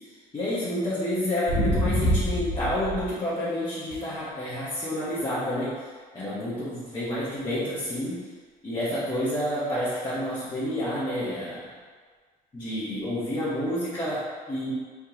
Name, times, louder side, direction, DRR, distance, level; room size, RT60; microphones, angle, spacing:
voice 1, 0.0-8.2 8.6-11.7 12.5-14.7, left 1 dB, 25° left, -10 dB, 1.2 m, -29 dB
sound 1, 1.5-3.1 3.9-4.1 9.9-10.0, equal, 60° left, 1.0 m, -25 dB
4.4 x 3.5 x 2.9 m, 1.5 s
cardioid pair, 110°, 17 cm